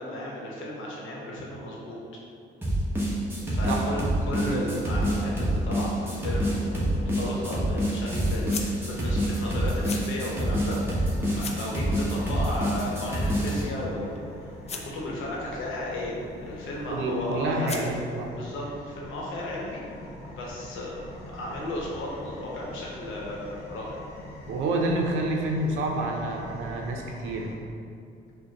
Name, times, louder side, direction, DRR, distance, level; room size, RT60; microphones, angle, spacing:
voice 1, 0.0-2.0 3.4-10.8 11.3-14.5 14.8-16.2 16.4-17.9 18.4-19.8 20.3-24.0, left 1 dB, 80° left, -3 dB, 0.9 m, -34 dB
sound 1, 2.6-13.6, equal, 10° right, 1.0 m, -26 dB
sound 2, 6.8-18.3, left 4 dB, 35° left, 0.4 m, -45 dB
sound 3, 10.7-27.5, left 1 dB, 55° left, 0.8 m, -44 dB
voice 2, 16.9-18.3 24.5-27.5, right 2 dB, 90° right, 1 dB, 0.5 m, -28 dB
5.0 x 2.2 x 2.8 m, 2.5 s
cardioid pair, 90°, 20 cm